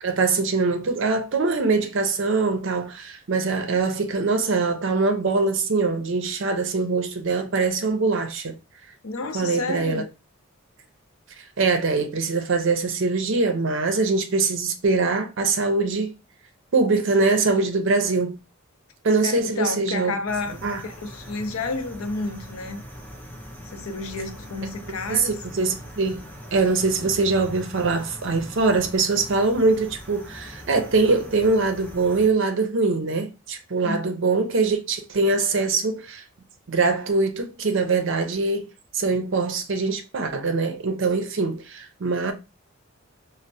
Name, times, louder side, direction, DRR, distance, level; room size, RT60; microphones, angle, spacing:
voice 1, 0.0-8.5 9.3-10.0 11.6-16.1 16.7-18.4 19.0-20.1 20.6-20.8 25.1-26.2 26.5-36.2 36.7-38.7 38.9-42.3, right 3 dB, 60° right, 0.6 m, -23 dB
voice 2, 9.0-10.1 19.2-20.6 20.8-22.8 23.6-25.4 33.8-34.0 39.1-39.2, left 3 dB, 85° left, 0.5 m, -30 dB
sound 1, 20.3-32.3, equal, 10° left, 0.6 m, -41 dB
4.2 x 2.1 x 2.6 m
head